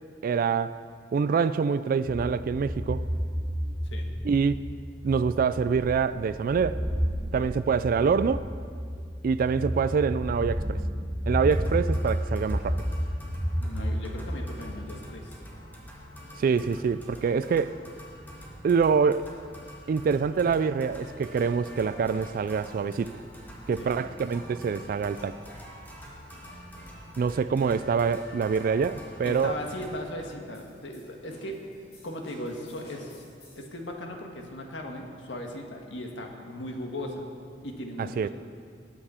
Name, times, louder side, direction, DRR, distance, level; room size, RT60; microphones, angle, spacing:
voice 1, 0.2-0.7 1.1-3.1 4.2-4.5 5.0-6.8 7.3-8.4 9.2-10.8 11.3-12.8 16.4-17.7 18.6-19.3 19.9-23.1 23.7-25.4 27.2-29.5 38.0-38.3, right 5 dB, 50° right, 14 dB, 0.3 m, -25 dB
sound 1, 2.1-14.9, equal, 5° right, 0.5 m, -31 dB
sound 2, 11.4-30.0, equal, 10° left, 2.0 m, -46 dB
voice 2, 13.6-15.4 23.8-23.9 29.2-31.7 32.0-33.2 33.5-37.2 37.6-38.3, left 1 dB, 90° left, 2 dB, 1.6 m, -37 dB
sound 3, 30.5-33.8, left 1 dB, 60° left, 3.2 m, -54 dB
19.5 x 8.8 x 4.3 m, 2.2 s
head